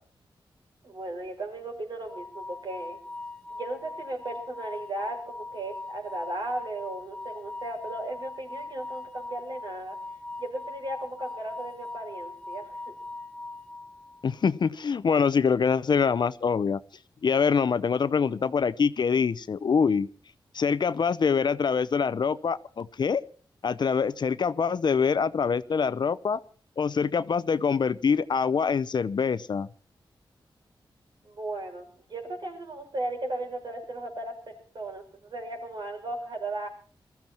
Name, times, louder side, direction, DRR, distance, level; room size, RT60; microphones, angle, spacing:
voice 1, 0.8-3.0 3.5-10.0 10.4-13.0 31.2-36.7, right 2 dB, 60° right, 3 dB, 5.5 m, -36 dB
sound 1, 2.1-14.3, left 2 dB, 10° left, 1.5 m, -41 dB
voice 2, 14.2-16.8 17.2-20.1 20.5-23.2 23.6-26.4 26.8-29.7, left 6 dB, 60° left, 16 dB, 0.7 m, -25 dB
22.0 x 14.0 x 4.4 m, 0.41 s
wide cardioid pair, 100°, 9 cm